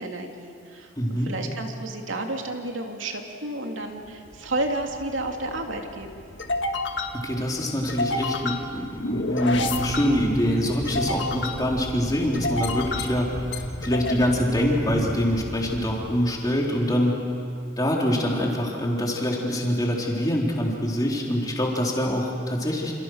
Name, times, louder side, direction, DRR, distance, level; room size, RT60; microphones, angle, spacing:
voice 1, 0.0-6.1, right 2 dB, 75° right, 2 dB, 2.9 m, -31 dB
voice 2, 1.0-1.3 7.1-17.2 17.8-22.9, equal, 20° left, -2 dB, 3.9 m, -25 dB
sound 1, 4.1-16.8, left 2 dB, 65° left, 1.8 m, -31 dB
28.5 x 28.5 x 6.5 m, 2.5 s
head